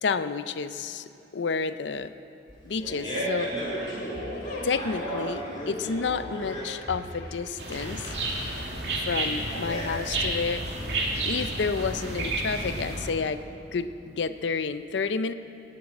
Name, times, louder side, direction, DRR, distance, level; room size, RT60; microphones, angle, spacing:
voice 1, 0.0-2.1 2.6-3.5 4.6-8.1 8.9-10.6 11.2-13.4 13.7-15.3, left 5 dB, 85° left, 12 dB, 0.5 m, -30 dB
Fart, 2.5-10.4, equal, 20° left, 4.6 m, -35 dB
sound 1, 3.7-8.6, left 1 dB, 55° left, 3.0 m, -45 dB
sound 2, 7.6-13.1, right 2 dB, 70° right, 2.4 m, -31 dB
19.5 x 7.4 x 8.8 m, 2.7 s
head